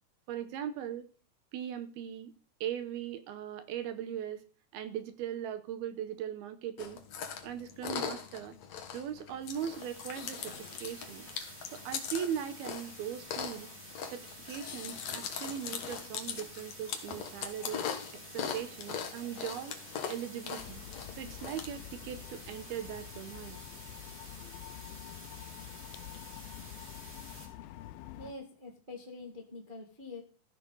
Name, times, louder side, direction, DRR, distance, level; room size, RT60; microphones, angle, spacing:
voice 1, 0.3-1.1 1.5-2.3 2.6-4.4 4.7-7.0 7.4-8.5 8.9-11.3 11.7-13.7 14.1-17.8 18.3-19.7 20.1-20.8 21.2-23.6, right 9 dB, 75° right, 10 dB, 2.9 m, -39 dB
Chewing mastication, 6.8-21.7, left 7 dB, 60° left, 2.1 m, -41 dB
sound 1, 9.4-27.5, right 1 dB, 15° right, 4.1 m, -50 dB
sound 2, 20.6-28.3, left 13 dB, 80° left, 2.3 m, -47 dB
voice 2, 28.1-30.2, left 3 dB, 45° right, 0 dB, 0.6 m, -45 dB
14.5 x 11.0 x 4.0 m, 0.40 s
omnidirectional pair, 4.6 m